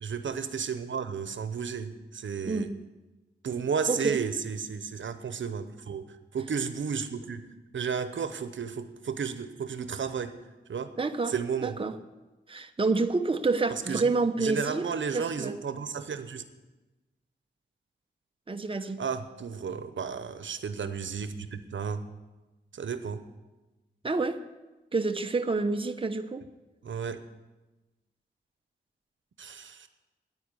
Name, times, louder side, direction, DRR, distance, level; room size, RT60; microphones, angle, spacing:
voice 1, 0.0-2.7 3.4-6.1 6.3-10.4 10.7-10.9 11.3-11.8 13.7-14.1 14.4-16.4 19.0-22.1 22.7-23.2 26.8-27.2 29.4-29.9, right 6 dB, 85° right, 11 dB, 0.8 m, -33 dB
voice 2, 2.4-2.8 3.9-4.2 11.0-11.3 11.6-11.9 12.5-14.9 15.1-15.5 18.5-19.0 24.0-24.4 24.9-26.4, right 3 dB, 30° right, 7 dB, 0.8 m, -28 dB
10.0 x 9.7 x 9.8 m, 1.1 s
wide cardioid pair, 95°, 19 cm